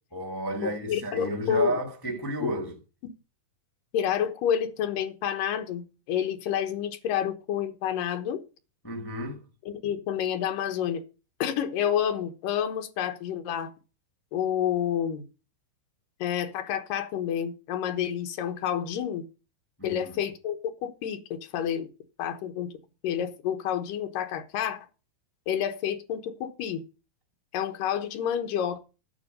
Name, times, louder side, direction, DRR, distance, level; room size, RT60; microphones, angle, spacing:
voice 1, 0.1-2.7 8.8-9.4 19.8-20.2, right 1 dB, 30° left, 0.3 m, -32 dB
voice 2, 0.6-1.8 2.4-2.5 3.9-8.4 9.7-11.0 11.4-13.7 14.3-15.2 16.2-19.2 19.8-21.9 22.2-22.7 23.0-24.9 25.5-26.8 27.5-28.8, left 9 dB, 75° left, 2.7 m, -29 dB
9.4 x 6.9 x 6.7 m
omnidirectional pair, 4.0 m